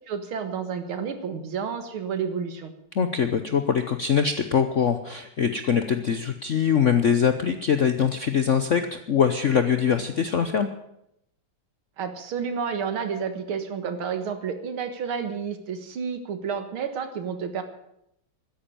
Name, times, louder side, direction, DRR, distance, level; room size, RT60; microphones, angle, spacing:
voice 1, 0.1-2.7 12.0-17.6, right 6 dB, 75° right, 9 dB, 2.4 m, -30 dB
voice 2, 2.9-10.7, left 7 dB, 60° left, 9 dB, 0.7 m, -23 dB
13.5 x 10.5 x 8.8 m, 0.78 s
omnidirectional pair, 2.4 m